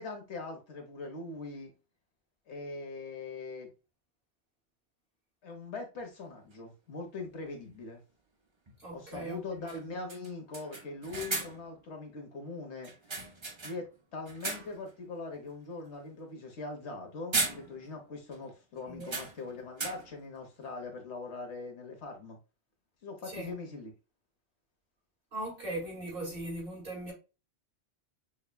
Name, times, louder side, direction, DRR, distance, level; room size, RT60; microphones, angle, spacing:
voice 1, 0.0-1.7 2.5-3.7 5.4-8.0 8.9-12.9 13.6-13.9 14.1-22.4 23.0-23.9, left 3 dB, 85° left, 1.4 m, -41 dB
sound 1, 6.5-6.6 8.7-8.8 9.1-9.2 9.7-9.8 10.1-11.8 12.8-13.9 14.2-14.9 15.3-15.5 16.8-17.0 17.3-18.1 18.3-18.4 19.0-20.3, right 3 dB, 30° right, 0.6 m, -37 dB
voice 2, 8.8-9.8 18.9-19.2 23.3-23.5 25.3-27.1, right 1 dB, 55° right, 2.2 m, -39 dB
6.2 x 2.2 x 2.2 m
omnidirectional pair, 1.1 m